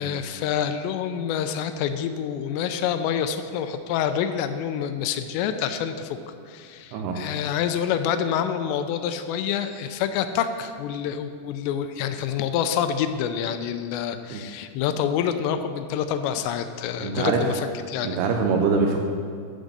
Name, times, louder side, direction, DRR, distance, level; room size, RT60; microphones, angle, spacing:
voice 1, 0.0-6.2 6.5-18.2, left 8 dB, 85° left, 9 dB, 2.7 m, -27 dB
voice 2, 17.0-17.4 18.0-19.0, right 5 dB, 80° right, 3 dB, 2.4 m, -23 dB
11.5 x 5.1 x 6.6 m, 2.3 s
omnidirectional pair, 5.1 m